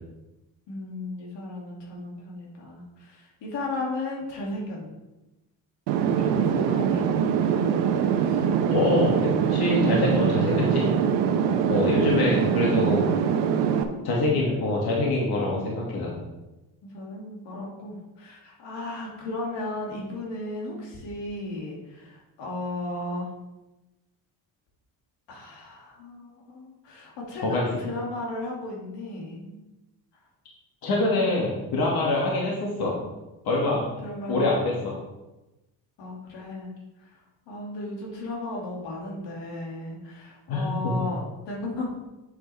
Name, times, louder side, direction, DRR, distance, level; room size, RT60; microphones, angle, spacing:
voice 1, 0.7-4.9 6.2-7.0 8.2-8.5 11.4-12.4 14.2-14.4 16.8-23.3 25.3-29.6 31.5-31.7 34.0-34.4 34.8-34.9 36.0-37.1 37.5-41.2 41.5-41.9, left 2 dB, 80° left, -2 dB, 2.6 m, -35 dB
sound 1, 5.9-13.8, right 8 dB, 85° right, 1.0 m, -23 dB
voice 2, 8.7-10.9 11.7-13.0 14.0-16.2 27.4-27.7 30.8-32.9 33.5-33.8 34.3-34.9 40.5-40.9, left 2 dB, 60° left, -3 dB, 2.3 m, -25 dB
8.3 x 7.6 x 3.5 m, 1.0 s
cardioid pair, 105°, 42 cm